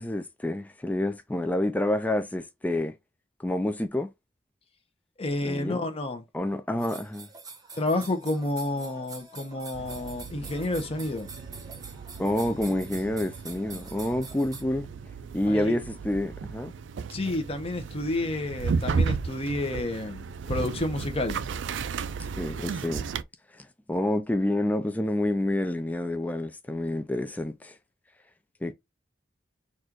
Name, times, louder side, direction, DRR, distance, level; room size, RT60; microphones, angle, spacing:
voice 1, 0.0-2.9 3.4-4.1 5.4-5.8 6.3-7.3 12.2-14.9 15.3-16.7 22.4-23.0 23.5-27.7 28.6-28.7, left 1 dB, 10° left, 0.3 m, -28 dB
voice 2, 5.2-6.2 7.8-11.3 15.5-15.8 17.1-21.4, left 2 dB, 35° left, 0.9 m, -30 dB
sound 1, 6.8-14.6, right 4 dB, 20° right, 0.8 m, -45 dB
sound 2, 9.7-23.2, right 5 dB, 85° right, 0.4 m, -34 dB
4.3 x 2.5 x 4.5 m
head